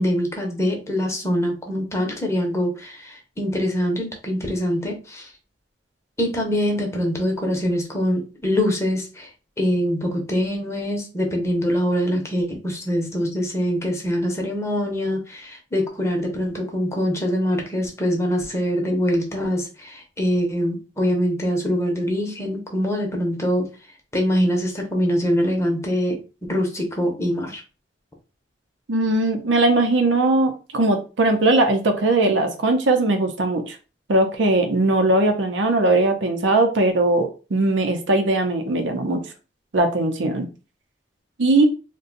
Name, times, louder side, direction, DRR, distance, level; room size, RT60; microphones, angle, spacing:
voice 1, 0.0-5.3 6.2-9.3 9.6-23.7 24.1-26.2 26.5-27.6, equal, 15° left, 1 dB, 0.7 m, -24 dB
voice 2, 28.9-33.8 34.1-39.2 39.7-40.5 41.4-41.6, right 2 dB, 90° right, 5 dB, 0.6 m, -19 dB
2.5 x 2.2 x 3.8 m, 0.33 s
head